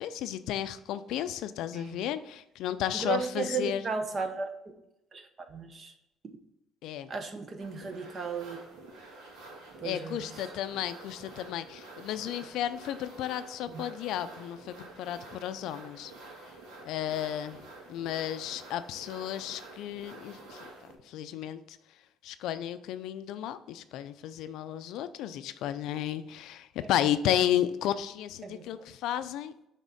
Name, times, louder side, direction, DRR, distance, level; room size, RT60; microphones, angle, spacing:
voice 1, 0.0-3.8 6.8-7.1 9.8-16.1 16.9-17.6 17.9-20.7 21.0-21.8 22.2-29.5, left 11 dB, 75° left, 12 dB, 0.4 m, -33 dB
voice 2, 1.7-2.1 2.9-4.5 5.1-5.9 7.1-8.6 9.8-10.5 13.7-13.9 17.9-18.0 26.8-26.9 28.4-28.7, right 5 dB, 30° right, 7 dB, 0.8 m, -35 dB
sound 1, 7.6-21.0, right 2 dB, 80° right, 1.9 m, -49 dB
6.3 x 3.6 x 5.3 m, 0.85 s
cardioid pair, 135°, 0 cm